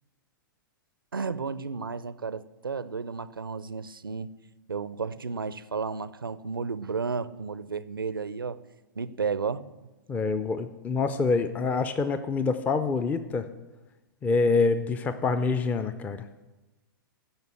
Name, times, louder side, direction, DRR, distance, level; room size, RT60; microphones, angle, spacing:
voice 1, 1.1-4.3 4.7-8.6 9.0-9.6, right 5 dB, 80° right, 17 dB, 0.5 m, -32 dB
voice 2, 10.1-13.5 14.2-16.2, left 4 dB, 15° left, 11 dB, 0.4 m, -26 dB
11.0 x 5.3 x 7.9 m, 1.1 s
figure-of-eight pair, 105°, 11 cm